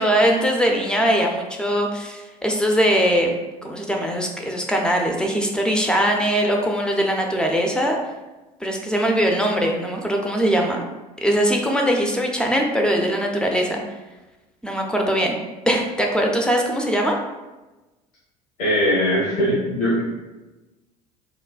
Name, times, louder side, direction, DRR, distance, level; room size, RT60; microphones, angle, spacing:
voice 1, 0.0-3.3 3.6-8.0 8.6-10.8 11.2-13.8 14.6-15.4 15.7-17.2, equal, 5° left, 1 dB, 0.4 m, -21 dB
voice 2, 18.6-20.0, equal, 70° left, -7 dB, 0.8 m, -20 dB
3.3 x 2.1 x 2.3 m, 1.1 s
figure-of-eight pair, 65°, 20 cm